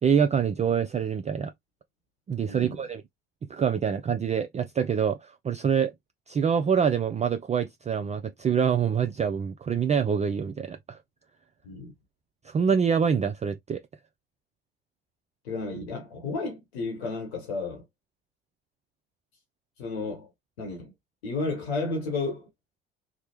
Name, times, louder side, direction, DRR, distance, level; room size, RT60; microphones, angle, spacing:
voice 1, 0.0-1.5 2.3-3.0 3.5-5.9 6.3-11.0 12.4-13.8, right 7 dB, 25° right, 0.4 m, -25 dB
voice 2, 15.4-17.8 19.8-20.3 20.6-20.9 21.2-22.5, left 3 dB, 85° left, 1.0 m, -32 dB
3.3 x 2.0 x 2.9 m
hypercardioid pair, 60°, 31 cm